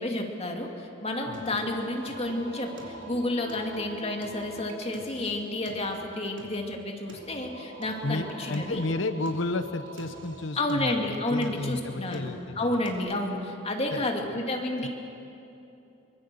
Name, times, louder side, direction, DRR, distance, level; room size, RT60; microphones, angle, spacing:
voice 1, 0.0-8.8 10.6-14.9, left 1 dB, 30° left, 2 dB, 2.5 m, -30 dB
Singing, 1.3-13.0, right 1 dB, 70° right, 3.3 m, -45 dB
voice 2, 8.0-12.9 13.9-14.0 14.8-14.9, left 2 dB, 65° left, 10 dB, 1.1 m, -32 dB
24.0 x 23.0 x 6.9 m, 2.8 s
head